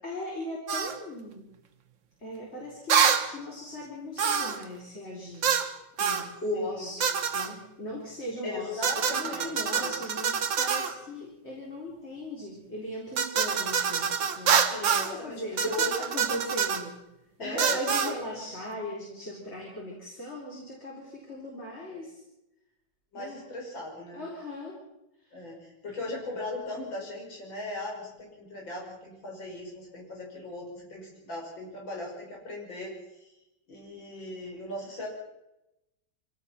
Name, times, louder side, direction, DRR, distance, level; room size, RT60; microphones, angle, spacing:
voice 1, 0.0-1.6 2.2-5.5 6.0-7.0 7.3-14.6 14.9-17.0 17.4-22.2 23.1-23.4 24.1-24.8 25.2-25.4, left 1 dB, 35° left, -3 dB, 4.3 m, -38 dB
sound 1, 0.7-0.9 2.9-3.3 4.2-4.6 5.4-5.7 6.0-6.3 7.0-7.5 8.8-10.9 13.2-15.1 15.6-16.8 17.6-18.1, right 7 dB, 80° right, 2.1 m, -26 dB
voice 2, 6.5-6.9 8.4-10.0 14.6-16.1 17.4-18.2 23.1-24.2 25.3-33.3 33.7-35.1, left 2 dB, 85° left, -1 dB, 6.7 m, -38 dB
25.0 x 17.5 x 5.9 m, 0.91 s
omnidirectional pair, 2.0 m